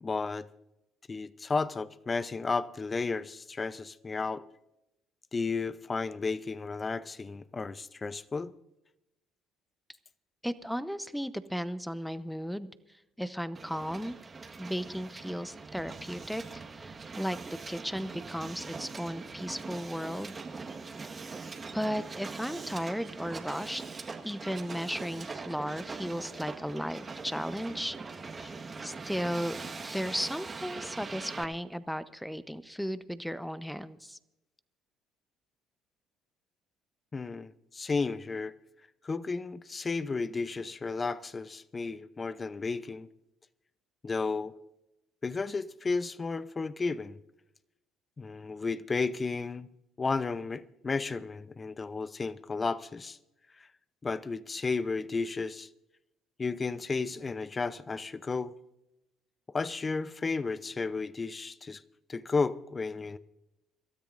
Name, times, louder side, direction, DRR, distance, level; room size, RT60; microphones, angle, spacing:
voice 1, 0.0-0.5 1.1-4.4 5.3-8.5 28.4-28.5 37.1-38.5 39.0-43.1 44.0-44.5 45.2-47.2 48.2-49.7 50.0-53.2 53.6-53.7 54.0-55.7 56.4-58.5 59.5-61.8 62.1-63.2, left 4 dB, 30° left, 0.7 m, -33 dB
voice 2, 10.4-12.7 13.2-14.2 14.6-17.4 17.7-20.4 21.7-23.8 24.2-28.0 28.8-34.2, equal, ahead, 0.9 m, -35 dB
Hiss, 13.5-31.4, right 4 dB, 30° right, 1.5 m, -42 dB
25.5 x 13.5 x 2.6 m
hypercardioid pair, 60°, 0 cm